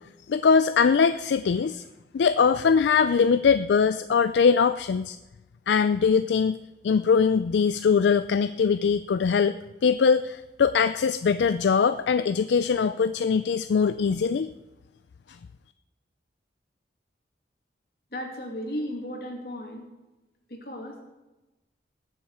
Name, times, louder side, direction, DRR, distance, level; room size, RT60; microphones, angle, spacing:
voice 1, 0.3-1.8 2.1-5.2 5.7-9.5 9.8-14.5, left 6 dB, 80° left, 11 dB, 0.4 m, -22 dB
voice 2, 18.1-19.9 20.5-21.0, equal, 60° left, 1 dB, 2.5 m, -35 dB
20.0 x 7.3 x 4.8 m, 1.0 s
head